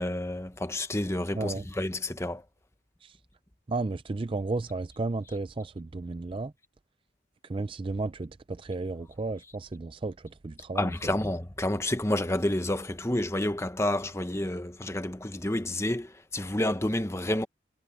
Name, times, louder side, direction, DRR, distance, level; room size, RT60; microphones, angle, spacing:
voice 1, 0.0-2.4 10.7-17.5, left 1 dB, 15° left, 0.9 m, -29 dB
voice 2, 1.3-1.7 3.0-3.1 3.7-6.5 7.5-10.1 10.4-10.9, right 3 dB, 25° right, 0.4 m, -33 dB
head